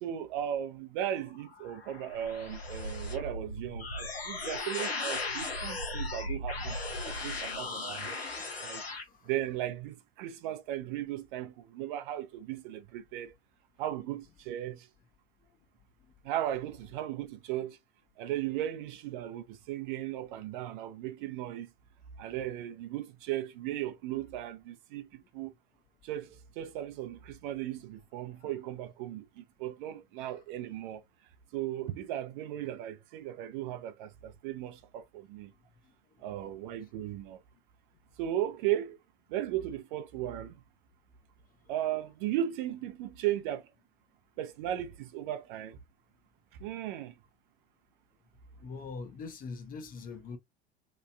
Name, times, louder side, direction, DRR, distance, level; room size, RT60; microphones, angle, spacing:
voice 1, 0.0-6.8 7.0-8.2 8.6-8.8 9.2-13.3 13.8-14.9 16.2-17.8 18.2-21.7 22.2-25.5 26.0-31.0 31.5-35.5 36.2-37.4 38.2-39.0 39.3-40.6 41.7-43.7 44.4-45.8 46.6-47.2, right 12 dB, 55° right, 0.6 m, -36 dB
sound 1, 1.3-9.0, left 2 dB, 90° left, 0.8 m, -37 dB
voice 2, 8.8-9.3 15.4-15.5 36.1-36.2 48.6-50.4, left 4 dB, 30° left, 0.6 m, -43 dB
3.0 x 2.4 x 2.2 m
figure-of-eight pair, 75°, 30 cm